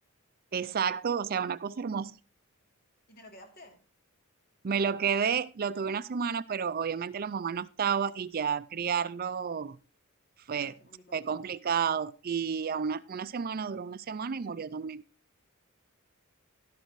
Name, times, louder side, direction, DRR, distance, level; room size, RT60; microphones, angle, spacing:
voice 1, 0.5-2.1 4.6-9.8 10.5-10.7 11.1-15.0, right 6 dB, 45° right, 15 dB, 0.4 m, -31 dB
voice 2, 3.1-3.8 10.5-11.2, left 1 dB, 45° left, 3 dB, 2.9 m, -52 dB
12.0 x 11.5 x 3.1 m, 0.33 s
head